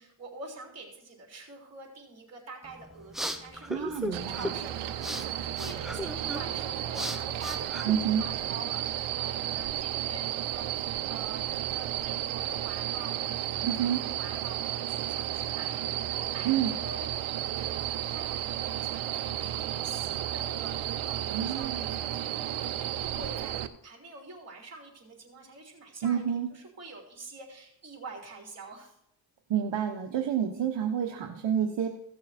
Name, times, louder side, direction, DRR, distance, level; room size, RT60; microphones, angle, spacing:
voice 1, 0.0-23.6 23.8-26.2 26.5-29.0, right 3 dB, 30° right, 0 dB, 3.7 m, -46 dB
sound 1, 2.6-8.5, equal, ahead, 0.8 m, -38 dB
voice 2, 3.7-4.5 7.8-8.2 13.7-14.0 16.4-16.8 21.3-21.9 26.0-26.5 29.5-31.9, right 9 dB, 60° right, 2 dB, 1.2 m, -29 dB
sound 2, 4.1-23.7, right 12 dB, 85° right, 0.8 m, -33 dB
16.0 x 6.6 x 4.3 m, 0.73 s
cardioid pair, 105°, 48 cm